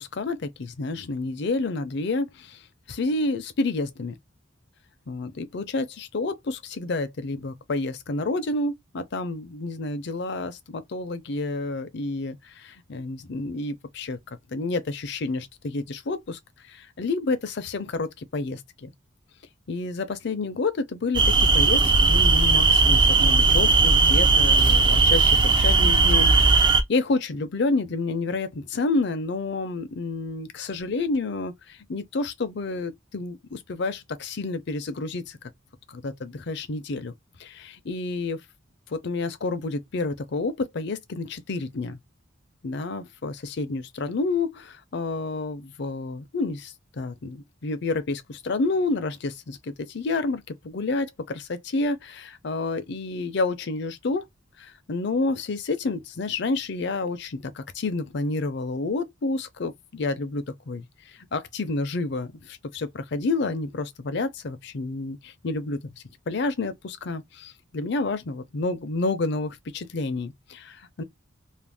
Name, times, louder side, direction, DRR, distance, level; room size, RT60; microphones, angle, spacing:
voice 1, 0.0-2.6 2.9-4.1 5.1-14.2 14.5-16.4 16.7-18.9 19.7-35.4 35.9-37.1 37.4-38.4 38.9-42.0 42.6-54.2 54.6-60.9 61.3-65.8 66.3-71.0, left 3 dB, 55° left, 0.5 m, -29 dB
sound 1, 21.1-26.8, right 3 dB, 25° right, 0.3 m, -18 dB
2.5 x 2.1 x 3.3 m
head